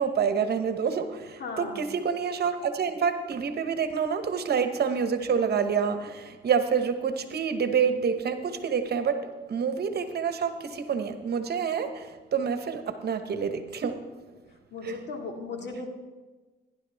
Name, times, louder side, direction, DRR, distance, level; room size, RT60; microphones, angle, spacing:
voice 1, 0.0-14.0 14.8-15.0, right 6 dB, 55° right, 8 dB, 1.1 m, -28 dB
voice 2, 1.4-1.8 14.7-15.9, left 4 dB, 60° left, 2 dB, 2.3 m, -36 dB
17.5 x 10.5 x 3.5 m, 1.3 s
cardioid pair, 90°, 20 cm